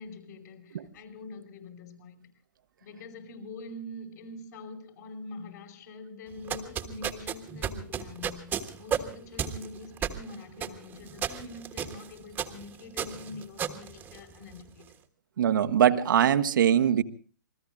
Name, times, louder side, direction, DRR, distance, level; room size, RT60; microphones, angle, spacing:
voice 1, 0.0-2.3 2.8-14.9, left 2 dB, 55° left, 5.3 m, -44 dB
sound 1, 6.3-14.7, right 8 dB, 15° right, 1.4 m, -34 dB
voice 2, 15.4-17.0, right 9 dB, 70° right, 1.1 m, -22 dB
28.0 x 21.0 x 2.4 m
hypercardioid pair, 140°, 11 cm